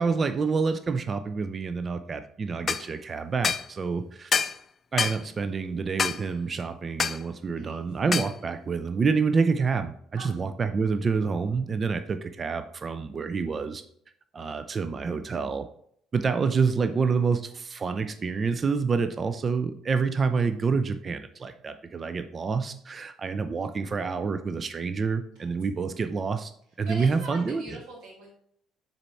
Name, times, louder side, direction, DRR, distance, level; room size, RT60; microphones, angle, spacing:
voice 1, 0.0-4.3 4.9-13.8 14.3-15.7 16.1-26.5 26.8-27.8, right 5 dB, 40° right, 10 dB, 0.5 m, -27 dB
sound 1, 2.7-2.8 3.4-3.7 4.3-4.6 5.0-5.2 6.0-6.2 7.0-7.2 8.1-8.3, left 6 dB, 40° left, 0.4 m, -26 dB
voice 2, 26.9-28.3, right 1 dB, 65° right, -2 dB, 2.4 m, -41 dB
6.8 x 4.2 x 4.4 m, 0.66 s
figure-of-eight pair, 50°, 0 cm